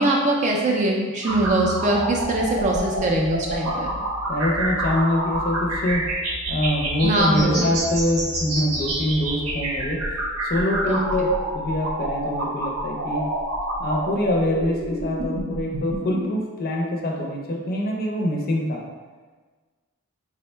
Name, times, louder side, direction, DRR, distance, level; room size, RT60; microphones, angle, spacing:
voice 1, 0.0-3.9 7.0-7.6 10.9-11.3, right 2 dB, 35° right, -1 dB, 0.3 m, -22 dB
sound 1, 1.2-16.2, right 1 dB, 80° right, 0.7 m, -28 dB
voice 2, 4.3-6.2 6.5-13.3 13.8-18.9, left 1 dB, 45° left, 0 dB, 0.5 m, -25 dB
3.6 x 2.1 x 4.3 m, 1.4 s
head